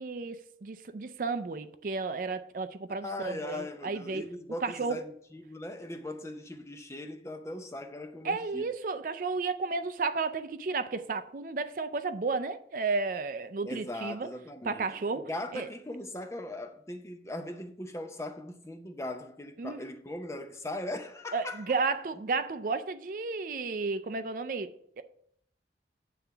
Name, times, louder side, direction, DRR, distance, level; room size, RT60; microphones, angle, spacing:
voice 1, 0.0-4.2 4.6-5.0 8.2-14.3 14.6-15.7 19.6-19.8 21.3-25.0, right 4 dB, 50° right, 0.4 m, -33 dB
voice 2, 3.0-8.7 13.7-14.9 15.1-21.7, left 1 dB, 15° left, 0.6 m, -39 dB
9.2 x 3.4 x 6.8 m
head